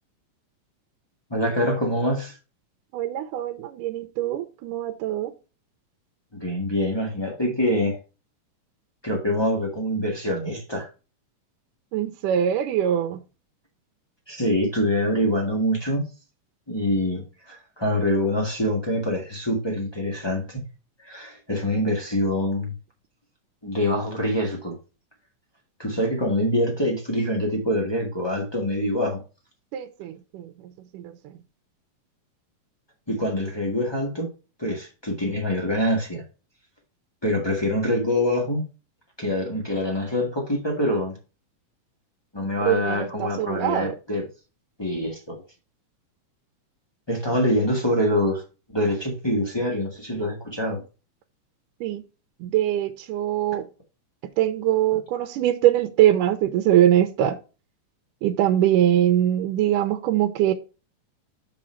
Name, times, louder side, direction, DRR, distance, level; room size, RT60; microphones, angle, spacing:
voice 1, 1.3-2.3 6.3-8.0 9.0-10.9 14.3-16.0 16.7-20.6 21.0-22.7 23.6-24.8 25.8-29.2 33.1-34.3 34.6-36.2 37.2-38.6 39.2-41.1 42.3-44.2 44.8-45.4 47.1-48.4 48.7-50.8, left 1 dB, 30° left, 0.5 m, -25 dB
voice 2, 2.9-5.3 11.9-13.2 29.7-30.5 30.9-31.1 42.7-43.9 51.8-52.0 52.4-53.6 54.4-57.4 58.2-60.5, right 11 dB, 85° right, 2.2 m, -22 dB
7.1 x 5.1 x 4.4 m
omnidirectional pair, 3.8 m